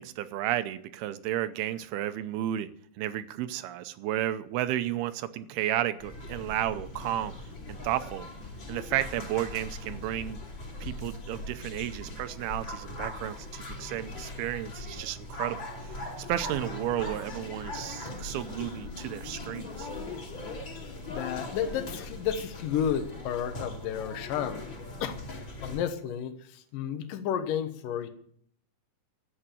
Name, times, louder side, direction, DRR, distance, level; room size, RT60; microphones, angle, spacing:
voice 1, 0.0-2.7 3.0-7.3 7.7-8.3 8.7-10.4 10.8-15.7 16.2-19.9, right 13 dB, 85° right, 12 dB, 2.7 m, -32 dB
sound 1, 6.0-25.8, left 2 dB, 30° left, 3.4 m, -40 dB
voice 2, 21.1-24.7 25.0-28.1, left 9 dB, 70° left, 8 dB, 2.6 m, -32 dB
13.0 x 8.7 x 8.7 m, 0.65 s
omnidirectional pair, 4.5 m